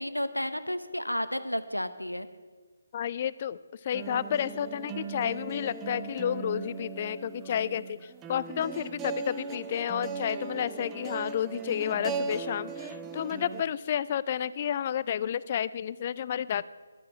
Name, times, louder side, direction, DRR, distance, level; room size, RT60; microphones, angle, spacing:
voice 1, 0.0-2.3, left 1 dB, 90° left, 12 dB, 0.8 m, -32 dB
voice 2, 2.9-3.6 3.8-8.0 8.3-16.6, left 9 dB, 30° left, 17 dB, 0.3 m, -31 dB
sound 1, 3.9-13.6, right 5 dB, 10° right, 0.6 m, -38 dB
12.0 x 7.5 x 7.7 m, 1.4 s
figure-of-eight pair, 145°, 0 cm